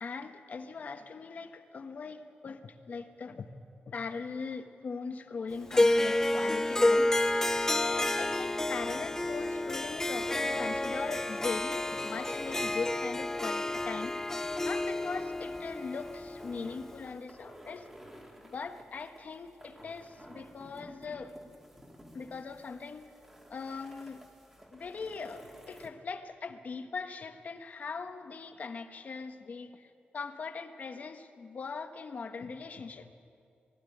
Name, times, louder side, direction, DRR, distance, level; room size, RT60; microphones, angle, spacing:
voice 1, 0.0-3.5 3.9-7.1 7.6-14.2 14.6-17.9 18.4-21.3 22.1-23.1 23.5-24.2 24.7-33.1, left 4 dB, 50° left, 7 dB, 1.3 m, -40 dB
Harp, 5.7-17.0, left 1 dB, 15° left, 0.5 m, -30 dB
sound 1, 9.3-25.9, equal, 10° right, 2.3 m, -53 dB
21.0 x 14.5 x 10.0 m, 2.5 s
wide cardioid pair, 155°, 3 cm